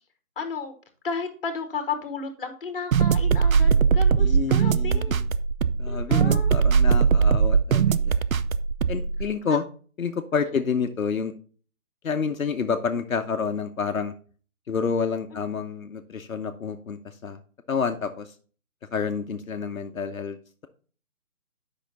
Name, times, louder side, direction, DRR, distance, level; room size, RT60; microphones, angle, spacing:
voice 1, 0.3-0.7 1.0-5.2 5.9-6.5 9.5-9.6, left 5 dB, 40° left, 7 dB, 1.5 m, -33 dB
sound 1, 2.9-9.2, right 6 dB, 75° right, 0.6 m, -20 dB
voice 2, 4.2-5.3 5.8-8.2 8.9-9.6 10.0-11.3 12.0-14.1 14.7-17.4 17.7-18.3 18.9-20.4, left 6 dB, 70° left, 6 dB, 0.9 m, -29 dB
8.2 x 5.8 x 4.0 m, 0.41 s
figure-of-eight pair, 160°, 42 cm